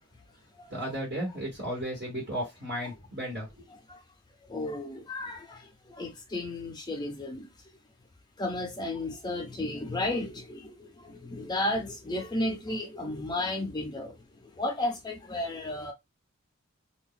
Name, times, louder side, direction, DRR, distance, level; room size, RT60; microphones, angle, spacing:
voice 1, 0.7-3.5, equal, 50° right, 1.4 m, -34 dB
voice 2, 3.7-4.0 4.5-5.6 5.9-7.5 8.4-14.1 14.6-15.9, left 1 dB, 20° left, 0.5 m, -33 dB
2.5 x 2.2 x 3.7 m
head